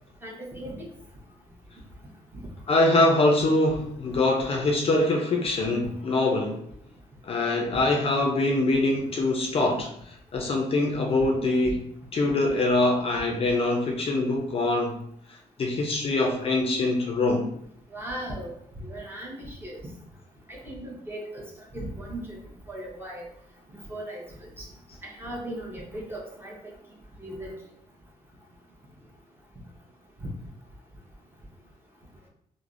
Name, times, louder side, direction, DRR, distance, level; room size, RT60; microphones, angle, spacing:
voice 1, 0.2-0.9 7.7-7.8 11.6-11.7 17.9-18.5 18.8-19.8 20.5-21.4 21.7-22.4 22.7-23.2 23.9-24.2 24.6-24.7 25.2-26.5 27.2-27.5 30.2-30.3, right 1 dB, 15° right, -2 dB, 0.8 m, -37 dB
voice 2, 2.7-6.6 7.2-11.9 12.1-15.0 15.3-17.5, left 2 dB, 40° left, 1 dB, 0.4 m, -24 dB
3.2 x 2.0 x 2.5 m, 0.69 s
cardioid pair, 110°, 15 cm